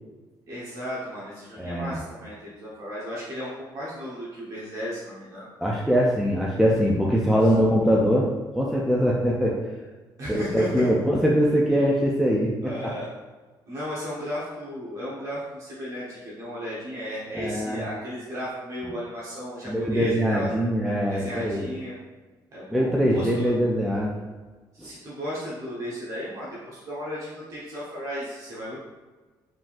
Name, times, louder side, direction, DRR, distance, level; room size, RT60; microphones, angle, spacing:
voice 1, 0.5-5.5 10.2-10.9 12.6-13.1 13.7-20.6 21.1-22.0 22.5-23.5 24.7-28.8, equal, 45° right, -7 dB, 1.1 m, -35 dB
voice 2, 1.6-2.0 5.6-8.3 8.5-9.6 10.3-12.5 17.3-17.8 19.7-21.7 22.7-24.1 24.8-24.9, equal, ahead, -4 dB, 0.4 m, -22 dB
4.9 x 3.7 x 2.5 m, 1.3 s
cardioid pair, 165°, 8 cm